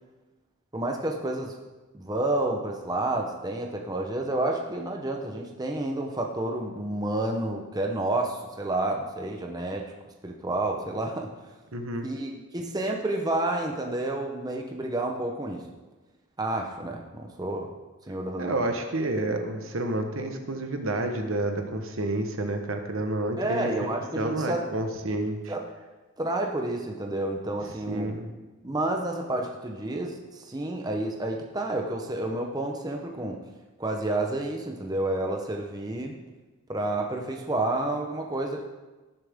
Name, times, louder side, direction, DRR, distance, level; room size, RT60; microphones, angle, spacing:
voice 1, 0.7-1.6 1.9-9.9 10.2-11.3 12.0-15.6 16.4-17.7 18.1-18.5 23.4-24.6 25.5-25.8 26.2-28.1 28.6-33.4 33.8-36.2 36.7-38.6, right 2 dB, 20° right, 2 dB, 0.8 m, -30 dB
voice 2, 11.7-12.1 18.4-23.7 24.1-25.5 27.9-28.3, right 1 dB, 65° right, 5 dB, 1.2 m, -29 dB
17.5 x 7.1 x 3.6 m, 1.2 s
head